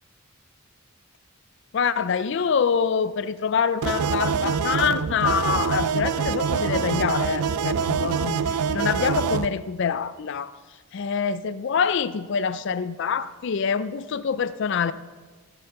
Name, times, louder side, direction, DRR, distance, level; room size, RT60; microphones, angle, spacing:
voice 1, 1.7-10.6 10.9-14.9, left 6 dB, 55° left, 15 dB, 0.4 m, -25 dB
sound 1, 3.8-9.5, right 6 dB, 90° right, 0.4 m, -25 dB
15.0 x 7.0 x 6.5 m, 1.4 s
head